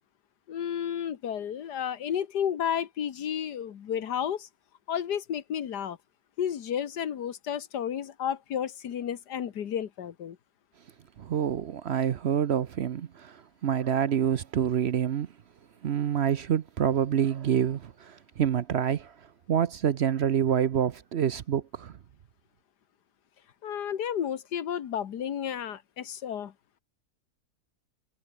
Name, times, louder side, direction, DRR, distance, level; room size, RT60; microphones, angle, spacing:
voice 1, 0.5-4.5 4.9-6.0 6.4-10.4 23.6-26.5, left 9 dB, 90° left, 1.8 m, -32 dB
voice 2, 11.2-15.3 15.8-22.0, right 9 dB, 55° right, 0.8 m, -27 dB
omnidirectional pair, 1.7 m